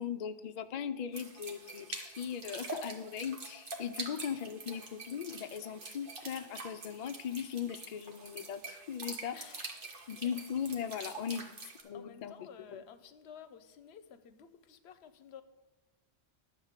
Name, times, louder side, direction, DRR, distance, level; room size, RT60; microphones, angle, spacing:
voice 1, 0.0-9.4 10.1-11.5 11.8-12.8, left 8 dB, 60° left, 0.4 m, -39 dB
sound 1, 1.1-11.8, right 3 dB, 55° right, 1.3 m, -45 dB
voice 2, 9.3-10.4 11.3-11.4 11.9-15.4, left 7 dB, 75° left, 0.9 m, -53 dB
11.0 x 3.7 x 7.3 m
omnidirectional pair, 1.1 m